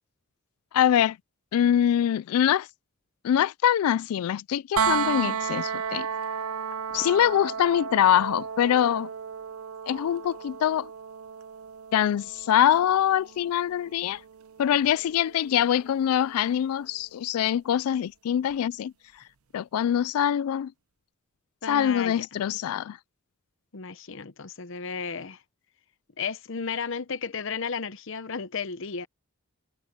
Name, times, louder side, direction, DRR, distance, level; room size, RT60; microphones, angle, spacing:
voice 1, 0.7-1.2 1.5-2.7 3.2-6.1 6.9-9.1 9.9-10.9 11.9-14.2 14.6-18.9 19.5-20.7 21.7-23.0, left 10 dB, 85° left, 0.3 m, -24 dB
sound 1, 4.8-16.6 18.5-18.6, right 6 dB, 80° right, 0.8 m, -34 dB
voice 2, 21.6-22.3 23.7-25.4 26.2-29.1, left 5 dB, 60° left, 0.8 m, -33 dB
head